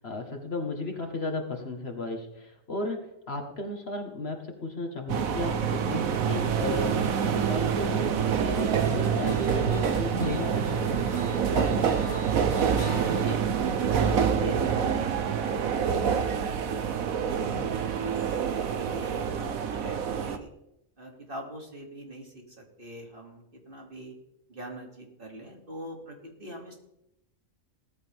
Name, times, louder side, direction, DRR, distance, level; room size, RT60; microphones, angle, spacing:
voice 1, 0.0-12.1 17.4-17.7, left 2 dB, 50° left, 3 dB, 1.9 m, -35 dB
sound 1, 5.1-20.4, right 7 dB, 90° right, 1.4 m, -26 dB
sound 2, 8.4-13.4, equal, 70° left, 2.8 m, -39 dB
voice 2, 13.1-13.4 13.8-15.8 16.1-16.9 17.4-17.6 18.0-20.5 21.0-24.1 24.5-26.7, equal, 40° right, 0 dB, 2.9 m, -43 dB
17.5 x 14.5 x 3.6 m, 0.83 s
omnidirectional pair, 1.4 m